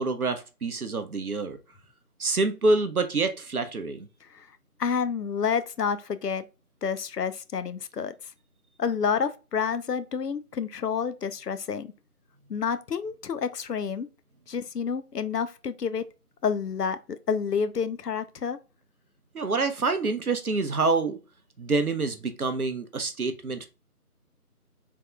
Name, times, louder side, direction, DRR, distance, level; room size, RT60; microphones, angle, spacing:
voice 1, 0.0-1.6 2.2-4.0 19.3-21.2 21.6-23.7, right 3 dB, 70° right, 0.6 m, -26 dB
voice 2, 4.8-6.5 6.8-8.1 8.8-11.9 12.5-14.1 14.5-16.0 16.4-18.6, left 6 dB, 85° left, 0.6 m, -29 dB
3.4 x 2.4 x 3.2 m
figure-of-eight pair, 180°, 47 cm